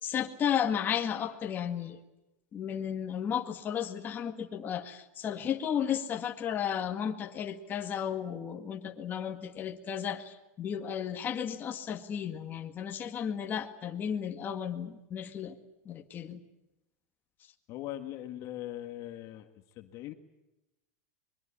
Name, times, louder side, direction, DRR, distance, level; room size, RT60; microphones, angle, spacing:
voice 1, 0.0-2.0 2.5-15.5 15.9-16.4, left 8 dB, 25° left, 4 dB, 1.9 m, -34 dB
voice 2, 17.7-19.5 19.8-20.1, left 13 dB, 40° left, 7 dB, 1.7 m, -40 dB
24.0 x 22.0 x 8.6 m, 0.93 s
supercardioid pair, 155°, 8 cm